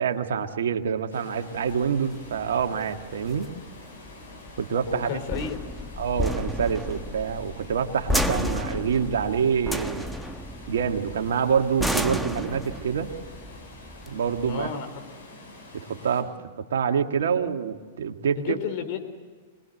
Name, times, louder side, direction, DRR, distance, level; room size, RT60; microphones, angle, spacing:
voice 1, 0.0-3.5 4.6-5.1 6.0-10.1 10.7-13.1 14.1-14.7 15.7-18.6, right 7 dB, 75° right, 6 dB, 1.8 m, -26 dB
Water, 1.1-16.2, left 2 dB, 80° left, 7.1 m, -46 dB
sound 1, 1.7-14.7, equal, ahead, 1.3 m, -32 dB
voice 2, 4.9-5.6 14.5-14.9 18.4-19.0, left 7 dB, 55° left, 7 dB, 4.0 m, -31 dB
24.5 x 21.0 x 7.9 m, 1.5 s
hypercardioid pair, 110°, 0 cm